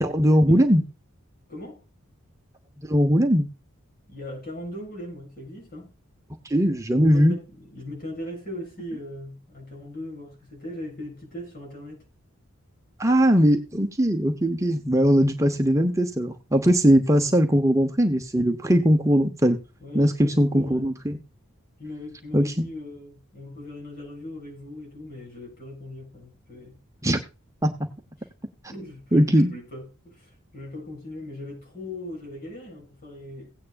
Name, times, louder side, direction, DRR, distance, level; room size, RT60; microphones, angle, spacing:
voice 1, 0.0-0.8 2.8-3.5 6.4-7.3 13.0-19.6 19.9-21.2 22.3-22.7 27.0-27.2 27.6-27.9 29.1-29.5, equal, 15° right, 1.0 m, -20 dB
voice 2, 1.5-1.8 4.1-5.9 7.1-12.0 17.1-17.4 19.8-21.0 21.8-26.8 28.2-28.3 28.7-33.5, left 1 dB, 45° left, 7.0 m, -39 dB
16.5 x 9.4 x 2.5 m
head